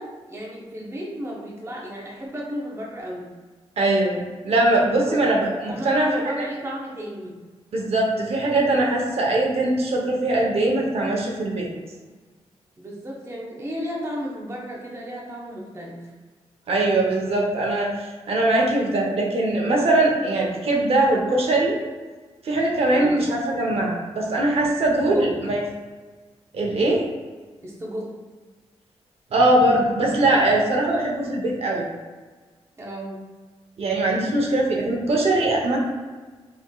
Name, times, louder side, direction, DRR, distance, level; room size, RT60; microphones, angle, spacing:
voice 1, 0.0-3.3 5.0-5.2 5.5-7.4 12.8-16.1 22.9-23.2 25.0-25.3 27.6-28.1 32.8-33.2, equal, 25° right, -3 dB, 0.9 m, -33 dB
voice 2, 3.8-6.1 6.4-6.5 7.7-11.7 16.7-21.8 22.4-25.6 26.5-27.0 29.3-31.9 33.8-35.8, right 2 dB, 65° right, -1 dB, 0.8 m, -21 dB
6.1 x 3.1 x 2.3 m, 1.3 s
wide cardioid pair, 140°, 11 cm